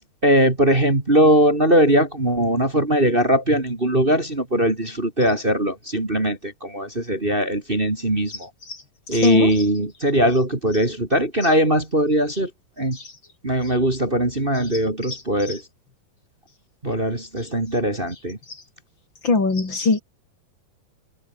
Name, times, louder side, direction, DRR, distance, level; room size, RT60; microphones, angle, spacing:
voice 1, 0.2-6.4 6.6-8.3 9.1-12.5 12.8-13.0 13.4-15.6 16.8-18.4, right 1 dB, 15° right, 2.1 m, -20 dB
voice 2, 9.1-9.7 11.4-11.5 12.3-12.4 12.9-13.0 15.1-15.2 15.5-15.6 19.2-20.0, left 3 dB, 30° left, 4.6 m, -21 dB
omnidirectional pair, 4.3 m